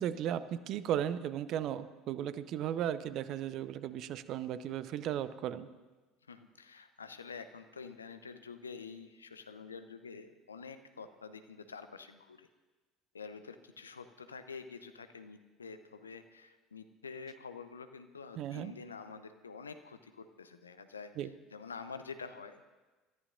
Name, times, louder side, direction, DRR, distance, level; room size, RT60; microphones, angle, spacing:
voice 1, 0.0-5.7 18.4-18.7 21.2-21.3, right 10 dB, 50° right, 15 dB, 0.7 m, -36 dB
voice 2, 6.3-12.5 13.1-22.7, left 5 dB, 85° left, 10 dB, 0.7 m, -48 dB
27.0 x 14.0 x 2.6 m, 1.2 s
figure-of-eight pair, 65°, 0 cm